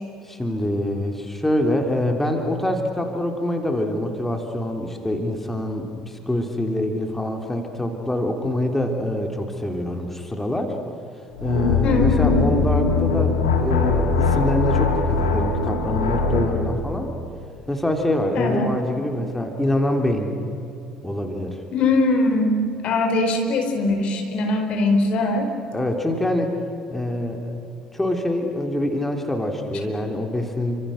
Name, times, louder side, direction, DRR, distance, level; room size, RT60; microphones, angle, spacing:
voice 1, 0.2-10.8 11.4-17.1 17.7-20.3 21.0-21.6 25.7-26.5 26.9-27.5 27.9-30.8, left 1 dB, 10° left, 3 dB, 3.3 m, -25 dB
sound 1, 11.4-16.6, left 4 dB, 80° left, 3.3 m, -21 dB
voice 2, 11.8-12.4 18.4-18.7 21.7-25.5, left 2 dB, 55° left, 5 dB, 4.5 m, -21 dB
29.5 x 26.0 x 6.6 m, 2.9 s
hypercardioid pair, 60°, 2 cm